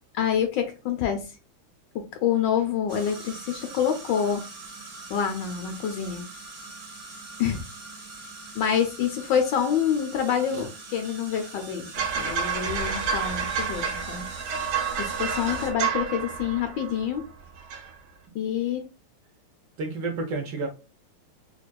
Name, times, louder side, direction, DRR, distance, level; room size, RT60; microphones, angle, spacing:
voice 1, 0.1-1.3 1.9-4.4 5.1-6.2 7.4-7.6 8.5-11.9 12.2-14.2 15.0-17.2 18.3-18.8, left 8 dB, 80° left, 1.0 m, -27 dB
sound 1, 2.9-15.7, right 3 dB, 40° right, 0.9 m, -43 dB
Creepy Horror Metal Foley Experiment, 11.9-17.3 17.6-17.9, right 6 dB, 90° right, 1.7 m, -29 dB
voice 2, 19.8-20.7, right 3 dB, 70° right, 1.1 m, -30 dB
4.4 x 2.4 x 2.2 m
omnidirectional pair, 2.4 m